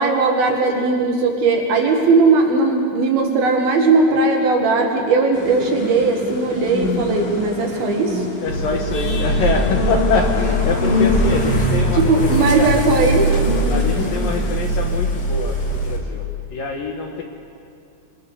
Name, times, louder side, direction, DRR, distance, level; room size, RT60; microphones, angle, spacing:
voice 1, 0.0-8.3 11.9-13.4, right 3 dB, 60° right, 1 dB, 3.5 m, -18 dB
sound 1, 5.3-14.6, left 2 dB, 80° left, 5.1 m, -26 dB
voice 2, 8.4-12.7 13.7-17.2, left 5 dB, 65° left, 2 dB, 2.5 m, -25 dB
sound 2, 8.5-16.0, right 1 dB, 35° left, 1.9 m, -21 dB
26.0 x 23.0 x 6.9 m, 2.5 s
omnidirectional pair, 5.3 m